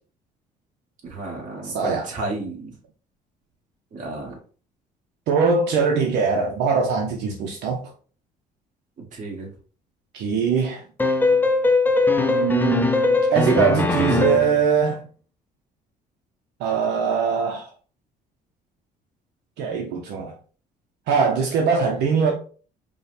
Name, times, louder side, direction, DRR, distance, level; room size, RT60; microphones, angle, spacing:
voice 1, 1.0-2.7 3.9-4.3 9.1-9.5, right 2 dB, 50° right, 1.8 m, -32 dB
voice 2, 1.6-2.1 5.3-7.8 10.1-10.8 12.2-15.0 16.6-17.7 19.6-20.3 21.1-22.3, right 5 dB, 80° right, 0.7 m, -22 dB
sound 1, 11.0-14.6, left 3 dB, 10° left, 0.5 m, -20 dB
5.2 x 2.2 x 3.2 m
cardioid pair, 110°, 17 cm